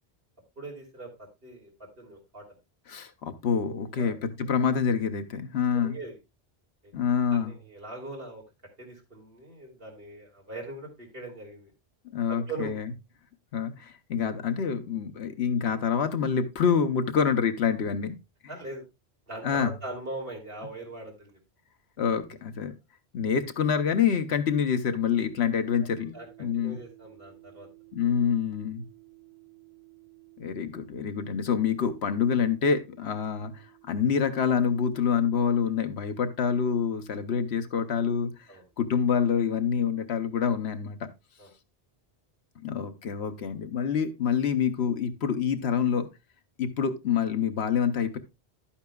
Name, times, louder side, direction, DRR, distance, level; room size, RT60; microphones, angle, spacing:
voice 1, 0.6-2.5 4.0-4.2 5.7-6.2 6.8-8.4 8.8-11.7 12.3-12.7 18.5-18.8 19.3-21.4 26.1-27.7 35.8-35.9 38.5-38.6 41.4-41.5, right 2 dB, 60° right, 3.2 m, -41 dB
voice 2, 2.9-6.0 6.9-7.5 12.0-12.9 13.5-18.2 19.4-19.7 22.0-22.7 23.1-26.8 27.9-28.8 30.4-38.5 38.8-41.1 42.6-46.1 46.6-48.2, left 7 dB, 75° left, 1.2 m, -27 dB
sound 1, 25.0-38.9, right 22 dB, 30° right, 1.7 m, -56 dB
11.5 x 8.7 x 2.3 m
omnidirectional pair, 1.1 m